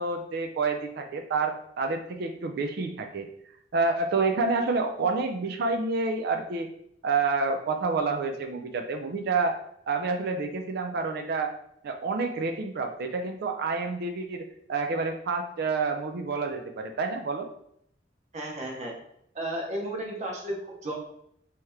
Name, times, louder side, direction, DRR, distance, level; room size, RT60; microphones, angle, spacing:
voice 1, 0.0-3.3 3.7-6.7 7.0-9.5 9.9-11.5 11.8-17.5, right 4 dB, 60° right, 5 dB, 0.4 m, -28 dB
voice 2, 18.3-19.0 19.3-20.9, right 1 dB, 40° right, 0 dB, 0.9 m, -33 dB
3.2 x 2.9 x 3.5 m, 0.72 s
head